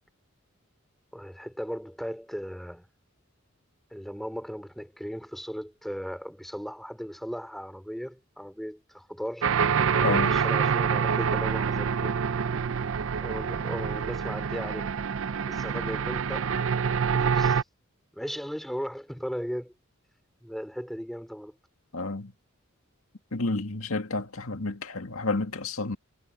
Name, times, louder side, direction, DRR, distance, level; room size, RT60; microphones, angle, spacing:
voice 1, 1.1-2.9 3.9-9.5 9.9-12.2 13.2-14.9 15.5-16.5 17.1-17.6 18.1-19.7 20.4-21.6, equal, ahead, 3.3 m, -37 dB
sound 1, 9.4-17.6, right 6 dB, 65° right, 0.5 m, -26 dB
voice 2, 10.0-10.3 21.9-22.3 23.3-26.0, left 3 dB, 85° left, 2.0 m, -30 dB
head